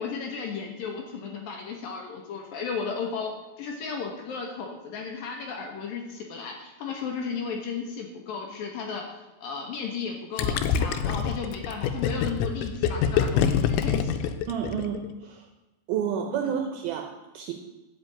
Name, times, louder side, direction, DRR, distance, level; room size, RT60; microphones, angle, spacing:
voice 1, 0.0-14.3 16.4-16.5, left 5 dB, 65° left, 1 dB, 2.6 m, -34 dB
Gurgling, 10.4-15.1, left 8 dB, 90° left, 3.0 m, -25 dB
voice 2, 14.5-15.4 15.9-17.5, right 8 dB, 75° right, 4 dB, 2.3 m, -30 dB
12.0 x 5.2 x 8.6 m, 1.1 s
omnidirectional pair, 5.2 m